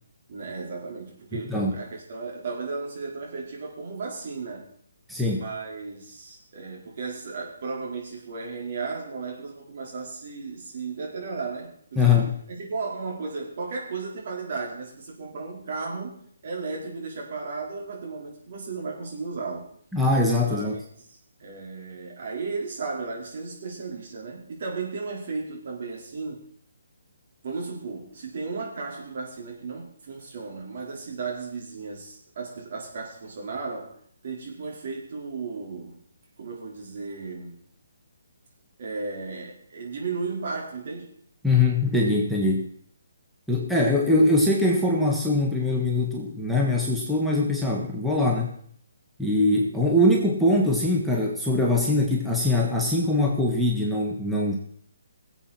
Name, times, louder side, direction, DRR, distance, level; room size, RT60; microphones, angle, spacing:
voice 1, 0.3-4.6 5.3-12.2 12.5-19.7 20.4-26.4 27.4-34.0 34.2-36.0 36.4-37.6 38.8-41.1, right 4 dB, 50° right, -2 dB, 4.7 m, -35 dB
voice 2, 1.3-1.8 5.1-5.4 12.0-12.4 19.9-20.8 41.4-42.7 43.5-48.5 49.2-54.5, left 2 dB, ahead, -3 dB, 1.6 m, -22 dB
20.0 x 8.1 x 4.5 m, 0.63 s
figure-of-eight pair, 145°, 0 cm